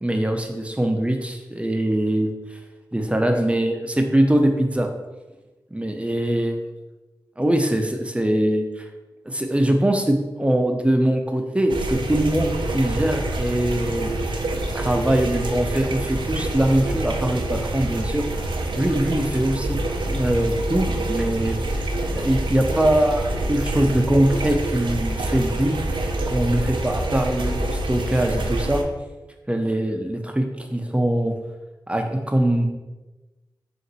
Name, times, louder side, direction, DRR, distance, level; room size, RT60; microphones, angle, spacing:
voice 1, 0.0-2.3 2.9-4.9 5.7-6.6 7.4-8.8 9.3-14.1 14.7-18.3 18.8-19.8 20.0-21.6 22.1-25.8 26.3-28.8 29.5-31.3 31.9-32.7, right 1 dB, 15° right, 4 dB, 0.6 m, -22 dB
sound 1, 11.7-28.8, right 1 dB, 80° right, 0.5 m, -26 dB
4.0 x 2.5 x 4.0 m, 1.1 s
cardioid pair, 55°, 8 cm